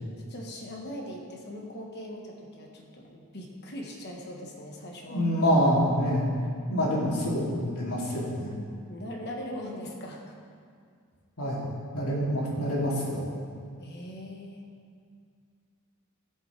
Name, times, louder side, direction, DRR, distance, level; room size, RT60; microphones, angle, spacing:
voice 1, 0.3-5.2 8.9-10.4 13.8-14.6, left 1 dB, 50° left, 0 dB, 1.5 m, -40 dB
voice 2, 5.1-6.3 6.7-8.5 11.4-11.7 11.9-13.3, equal, 80° left, -6 dB, 2.9 m, -26 dB
17.0 x 7.4 x 3.4 m, 2.2 s
head